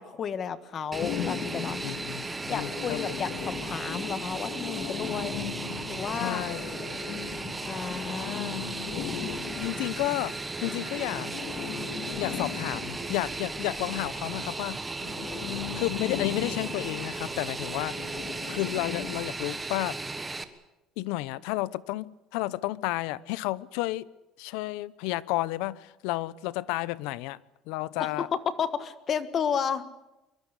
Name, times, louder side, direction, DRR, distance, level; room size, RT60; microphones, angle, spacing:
voice 1, 0.0-1.9 2.5-5.5 5.9-6.4 7.6-8.7 28.0-29.9, left 7 dB, 30° left, 1.5 m, -32 dB
Fixed-wing aircraft airplane, 0.9-20.4, right 3 dB, 10° right, 1.4 m, -36 dB
sound 1, 1.0-10.6 11.1-13.7 15.0-19.2, left 9 dB, 60° left, 2.4 m, -38 dB
voice 2, 1.8-3.2 6.2-7.0 9.6-11.3 12.2-15.0 15.7-18.0 18.5-20.0 21.0-24.1 24.4-27.4 27.7-28.3, left 18 dB, 85° left, 0.9 m, -32 dB
sound 2, 3.9-18.1, right 5 dB, 25° right, 4.1 m, -50 dB
23.5 x 23.0 x 8.3 m
cardioid pair, 175°, 0 cm